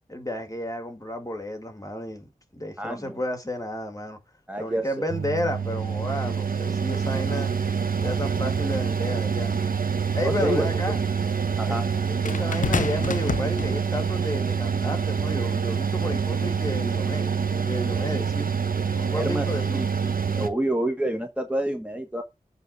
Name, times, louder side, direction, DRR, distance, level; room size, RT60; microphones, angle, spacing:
voice 1, 0.1-4.2 4.6-7.5 8.0-9.5 10.1-11.0 11.7-11.8 12.1-17.3 17.6-18.5 18.9-19.8, left 1 dB, 25° left, 2.1 m, -32 dB
voice 2, 2.8-3.2 4.5-5.0 10.2-10.9 11.6-11.8 19.1-19.9 20.4-22.2, right 1 dB, 10° right, 1.4 m, -28 dB
Mechanical fan, 5.1-20.5, right 6 dB, 70° right, 1.0 m, -26 dB
sound 1, 12.2-14.1 15.1-15.3, left 5 dB, 60° left, 0.4 m, -29 dB
8.1 x 3.8 x 6.7 m
wide cardioid pair, 55°, 15 cm